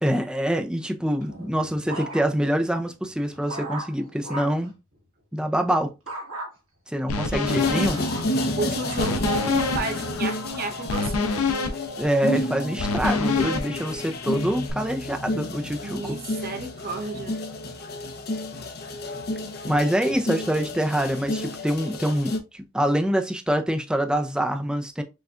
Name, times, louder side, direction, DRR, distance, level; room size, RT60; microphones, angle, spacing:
voice 1, 0.0-4.7 5.3-5.9 6.9-8.0 12.0-16.2 19.7-25.0, equal, 5° right, 0.4 m, -25 dB
sound 1, 1.2-2.6 3.0-4.7 6.1-6.5 7.1-9.1 9.7-10.1, right 1 dB, 75° right, 1.5 m, -38 dB
sound 2, 7.1-14.7, left 4 dB, 85° left, 0.6 m, -28 dB
sound 3, 7.5-22.4, left 1 dB, 50° left, 0.6 m, -31 dB
voice 2, 8.6-11.3 15.8-17.4, right 3 dB, 45° right, 0.7 m, -31 dB
6.1 x 2.2 x 2.4 m
head